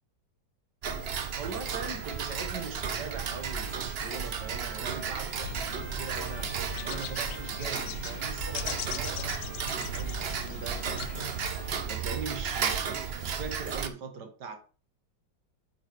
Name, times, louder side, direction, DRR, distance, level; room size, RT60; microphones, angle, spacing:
Tick-tock, 0.8-13.9, right 6 dB, 50° right, 0.7 m, -34 dB
sound 1, 1.3-12.3, right 2 dB, 10° right, 0.5 m, -50 dB
voice 1, 1.4-11.4 11.9-14.6, right 4 dB, 65° right, 1.9 m, -41 dB
sound 2, 5.4-11.8, left 13 dB, 70° left, 0.9 m, -41 dB
9.4 x 4.9 x 4.5 m
omnidirectional pair, 2.0 m